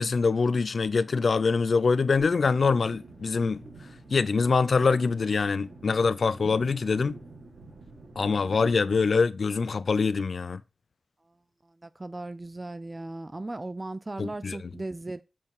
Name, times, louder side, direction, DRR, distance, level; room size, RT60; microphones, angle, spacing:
voice 1, 0.0-3.6 4.1-7.2 8.2-10.6 14.2-14.6, left 4 dB, 60° left, 0.6 m, -24 dB
sound 1, 2.2-9.1, right 2 dB, 80° right, 4.0 m, -48 dB
voice 2, 11.8-15.2, right 2 dB, 25° right, 0.4 m, -37 dB
7.4 x 4.6 x 5.9 m
wide cardioid pair, 120°, 0 cm